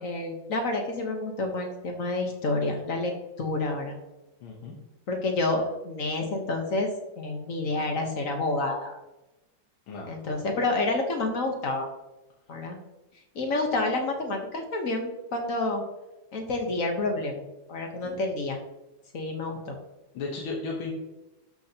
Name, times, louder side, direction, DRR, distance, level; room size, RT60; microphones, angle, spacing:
voice 1, 0.0-3.9 5.1-9.0 10.1-11.9 12.5-12.8 13.3-15.8 16.3-18.6 19.1-19.8, left 2 dB, 45° left, 3 dB, 1.3 m, -29 dB
voice 2, 4.4-4.8 9.9-10.2 18.0-18.2 20.1-20.9, left 3 dB, 85° left, -2 dB, 1.9 m, -35 dB
12.0 x 6.0 x 2.9 m, 1.0 s
omnidirectional pair, 2.2 m